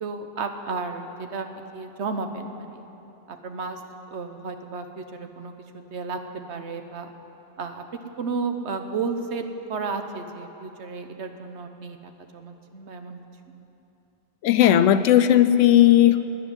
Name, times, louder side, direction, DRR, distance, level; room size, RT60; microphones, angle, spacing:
voice 1, 0.0-2.8 3.3-3.8 4.1-6.2 6.5-7.1 7.6-7.8 8.2-13.2, right 4 dB, 65° right, 6 dB, 1.3 m, -33 dB
voice 2, 14.4-16.2, left 11 dB, 80° left, 12 dB, 0.9 m, -16 dB
13.0 x 9.8 x 9.7 m, 2.9 s
omnidirectional pair, 1.3 m